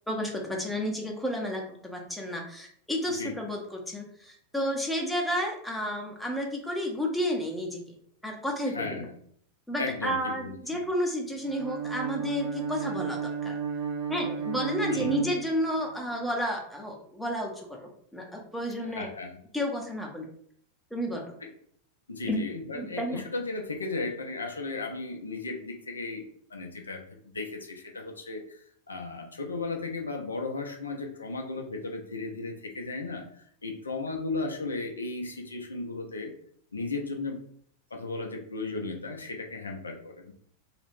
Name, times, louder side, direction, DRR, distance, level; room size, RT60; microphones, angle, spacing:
voice 1, 0.1-8.0 8.2-9.1 9.7-13.5 14.1-19.1 19.5-20.3 20.9-21.3 22.3-22.4 22.7-23.2, equal, 5° left, 0 dB, 0.6 m, -31 dB
voice 2, 8.6-9.1 9.8-10.8 14.9-15.3 18.8-19.3 21.4-21.5 22.1-26.2 26.5-28.6 28.9-36.3 36.7-37.4 37.9-40.3, left 3 dB, 75° left, 2 dB, 0.4 m, -35 dB
Bowed string instrument, 11.4-16.0, right 6 dB, 50° right, 0.4 m, -33 dB
2.3 x 2.0 x 3.3 m, 0.63 s
figure-of-eight pair, 90°, 0 cm